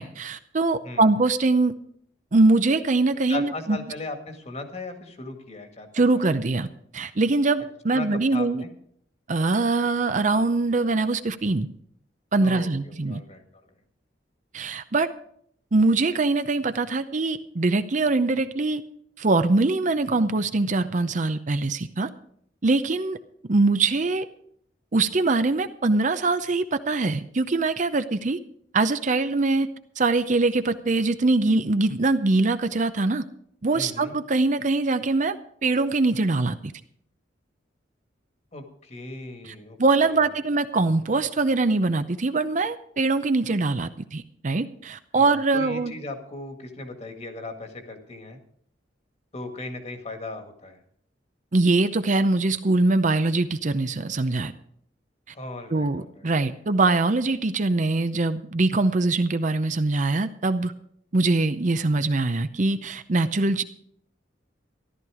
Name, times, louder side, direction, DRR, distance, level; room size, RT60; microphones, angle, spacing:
voice 1, 0.0-1.7 2.3-3.8 5.9-6.7 6.9-8.6 9.3-11.7 12.3-13.2 14.5-15.1 15.7-18.8 19.2-22.1 22.6-23.2 23.5-24.3 24.9-28.4 28.7-29.7 30.0-33.2 33.6-35.4 35.6-36.7 39.8-45.9 51.5-54.5 55.7-60.7 61.1-63.6, right 3 dB, 45° right, 11 dB, 0.6 m, -23 dB
voice 2, 3.3-6.2 7.9-8.7 12.4-13.7 33.7-34.1 38.5-40.3 45.1-48.4 49.3-50.8 55.3-56.3, left 2 dB, 35° left, 6 dB, 1.9 m, -37 dB
14.0 x 12.5 x 4.9 m, 0.65 s
head